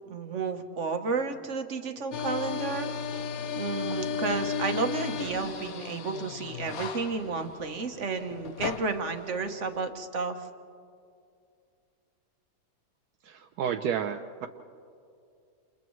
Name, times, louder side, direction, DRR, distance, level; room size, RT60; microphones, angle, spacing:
voice 1, 0.1-2.9 3.6-10.3, right 4 dB, 50° right, 6 dB, 1.3 m, -32 dB
sound 1, 2.1-9.9, left 6 dB, 65° left, 1.3 m, -35 dB
voice 2, 13.3-14.5, right 8 dB, 80° right, 7 dB, 1.2 m, -31 dB
29.0 x 28.5 x 3.2 m, 2.4 s
omnidirectional pair, 1.7 m